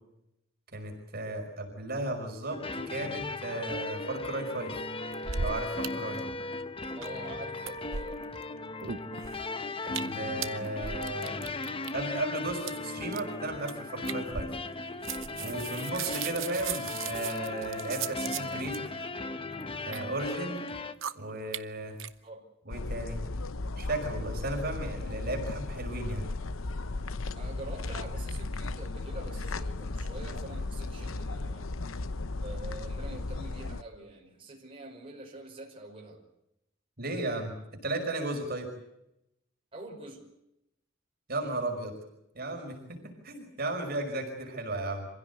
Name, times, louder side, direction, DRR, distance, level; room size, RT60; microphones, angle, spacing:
voice 1, 0.7-4.8 5.4-6.2 9.9-11.4 11.9-14.5 15.4-18.9 19.9-20.6 21.1-22.0 22.7-23.2 23.8-26.3 37.0-37.5 37.8-38.7 41.3-41.9 42.3-45.1, right 2 dB, 50° right, 3 dB, 5.6 m, -35 dB
sound 1, 2.5-20.9, left 3 dB, 25° left, 1.1 m, -37 dB
sound 2, 5.1-5.9 6.1-6.2 6.5-7.3 7.6-8.4 8.8-9.4 9.9-10.1 10.4-11.9 12.6-12.7 13.1-13.3 13.7-13.8 14.0-14.8 15.0-18.8 19.5-20.0 20.6-20.7 21.0-21.1 21.5-21.6 22.0-22.1, right 7 dB, 70° right, 1.0 m, -37 dB
voice 2, 7.0-8.2 15.7-15.9 22.2-22.4 27.3-31.7 32.4-36.2 39.7-40.3, right 2 dB, 25° right, -1 dB, 5.6 m, -45 dB
sound 3, 22.7-33.8, left 2 dB, 80° left, 0.9 m, -36 dB
27.0 x 16.0 x 8.3 m, 0.84 s
head